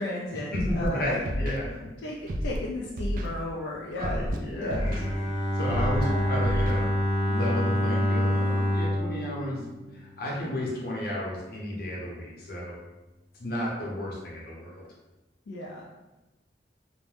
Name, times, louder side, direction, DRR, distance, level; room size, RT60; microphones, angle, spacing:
voice 1, 0.0-1.2 1.5-1.6 2.0-4.3 4.6-4.9 6.0-6.4 15.5-15.9, left 1 dB, 85° left, -3 dB, 0.4 m, -35 dB
voice 2, 0.5-1.7 3.9-4.8 5.5-6.9 7.2-9.6 9.9-12.7 13.3-14.8, left 1 dB, 60° left, -4 dB, 0.8 m, -32 dB
Scratching (performance technique), 0.5-0.9 1.3-1.6 2.3-2.6 3.0-3.3 4.0-4.4 4.7-5.0 5.7-6.0 6.4-6.7, equal, 50° right, 0.3 m, -29 dB
Bowed string instrument, 4.8-10.7, left 1 dB, 30° left, 0.6 m, -27 dB
2.5 x 2.1 x 3.2 m, 1.1 s
head